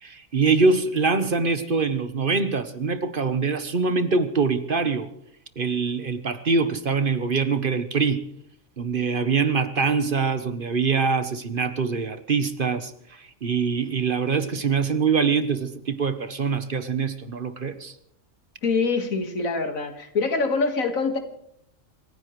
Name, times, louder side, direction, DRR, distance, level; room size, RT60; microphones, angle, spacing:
voice 1, 0.0-5.1 5.6-8.2 8.8-17.9, right 4 dB, 45° right, 11 dB, 1.1 m, -24 dB
voice 2, 18.6-21.2, left 4 dB, 90° left, 6 dB, 2.1 m, -24 dB
26.5 x 15.5 x 3.1 m, 0.71 s
omnidirectional pair, 1.4 m